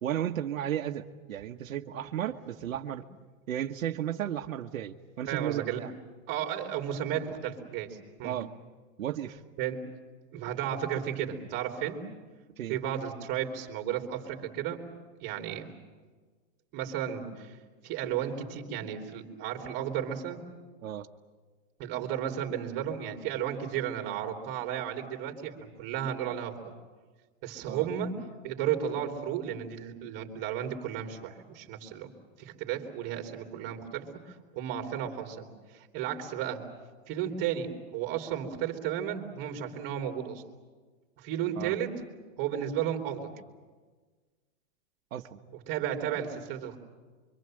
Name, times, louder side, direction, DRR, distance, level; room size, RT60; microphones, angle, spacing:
voice 1, 0.0-3.0 3.5-5.9 8.2-8.5 9.0-9.4 12.6-12.8 20.8-21.1 27.7-27.9 41.6-41.7 45.1-45.4, right 11 dB, 80° right, 4 dB, 1.4 m, -34 dB
voice 2, 5.3-5.8 6.3-8.4 9.6-9.9 10.3-12.0 12.7-14.8 15.2-15.7 16.7-17.5 17.8-20.4 21.8-25.5 25.8-26.6 27.4-32.1 32.4-34.1 34.5-36.6 37.1-40.4 41.2-42.0 42.4-43.3 45.7-46.8, right 9 dB, 25° right, 3 dB, 3.0 m, -33 dB
26.5 x 24.5 x 7.7 m, 1.4 s
supercardioid pair, 175°, 39 cm